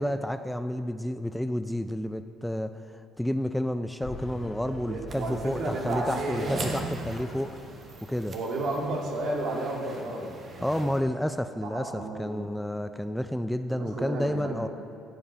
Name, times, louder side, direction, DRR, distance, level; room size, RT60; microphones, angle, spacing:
voice 1, 0.0-7.6 8.0-8.3 10.6-14.7, equal, 5° left, 9 dB, 0.4 m, -30 dB
sound 1, 4.0-9.5, left 1 dB, 35° left, 1.9 m, -44 dB
voice 2, 4.9-6.6 8.3-11.0 11.6-12.4 13.7-14.7, right 2 dB, 65° right, -1 dB, 2.1 m, -32 dB
sound 2, 5.1-11.0, right 3 dB, 45° right, 1.3 m, -41 dB
15.0 x 5.3 x 5.1 m, 2.6 s
supercardioid pair, 75°, 0 cm